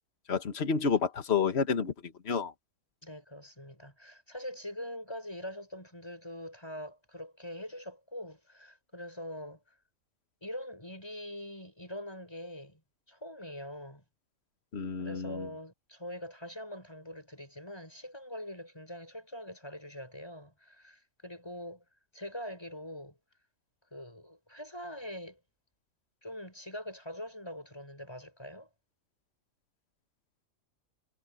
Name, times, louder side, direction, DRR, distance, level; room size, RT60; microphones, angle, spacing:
voice 1, 0.3-2.5 14.7-15.5, left 6 dB, 45° left, 1.7 m, -30 dB
voice 2, 3.0-9.7 10.4-12.8 13.1-14.0 15.0-21.8 22.1-23.2 23.9-25.4 26.2-28.7, equal, 15° left, 7.6 m, -43 dB
omnidirectional pair, 1.6 m